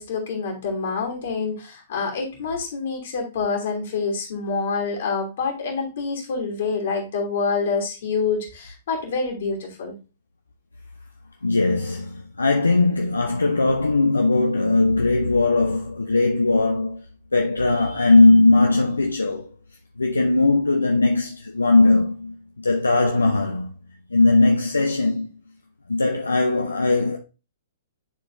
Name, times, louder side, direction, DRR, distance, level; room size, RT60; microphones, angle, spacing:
voice 1, 0.0-10.0, left 4 dB, 60° left, 3.0 m, -27 dB
voice 2, 11.4-17.0 17.3-19.5 20.0-23.7 24.1-25.3 25.9-27.2, left 2 dB, 85° left, 0.7 m, -19 dB
10.5 x 4.3 x 2.7 m
figure-of-eight pair, 115°, 0 cm